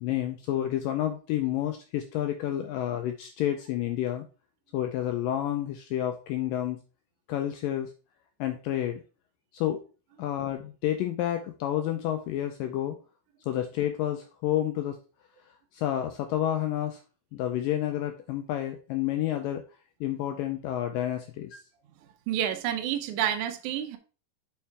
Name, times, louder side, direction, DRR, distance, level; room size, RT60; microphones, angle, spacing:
voice 1, 0.0-4.3 4.7-6.8 7.3-7.9 8.4-9.0 9.5-9.8 10.2-13.0 13.5-15.0 15.7-17.0 17.3-19.6 20.0-21.6, left 12 dB, 90° left, 2.0 m, -29 dB
voice 2, 22.3-24.0, right 10 dB, 85° right, 1.7 m, -29 dB
7.4 x 5.6 x 3.4 m
omnidirectional pair, 4.6 m